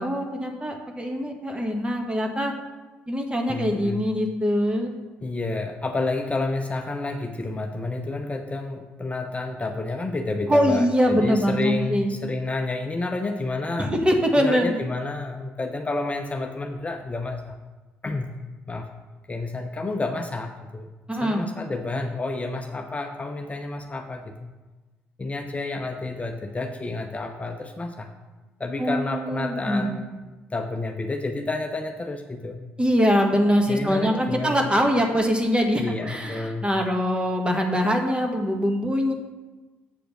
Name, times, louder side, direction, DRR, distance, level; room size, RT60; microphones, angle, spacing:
voice 1, 0.0-2.5 3.1-4.9 10.5-12.2 13.8-14.8 21.1-21.4 28.8-29.9 32.8-39.1, equal, 15° right, 3 dB, 1.6 m, -23 dB
voice 2, 3.5-4.0 5.2-13.9 14.4-17.6 18.0-18.3 18.7-18.9 19.3-20.9 21.2-24.5 25.2-28.1 28.6-32.7 33.7-34.7 35.8-36.7, left 2 dB, 25° left, 4 dB, 0.7 m, -30 dB
7.6 x 5.1 x 5.9 m, 1.2 s
hypercardioid pair, 50°, 6 cm